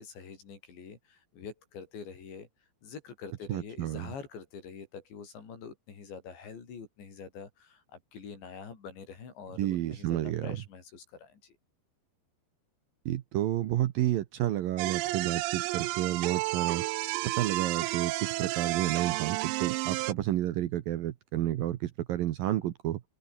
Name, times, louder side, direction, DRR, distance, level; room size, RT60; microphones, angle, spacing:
voice 1, 0.0-2.5 2.8-11.6, left 6 dB, 80° left, 7.8 m, -45 dB
voice 2, 3.5-4.1 9.6-10.6 13.1-16.9 17.2-23.0, right 13 dB, 70° right, 2.4 m, -30 dB
sound 1, 14.8-20.1, right 18 dB, 85° right, 3.1 m, -31 dB
open air
omnidirectional pair, 5.1 m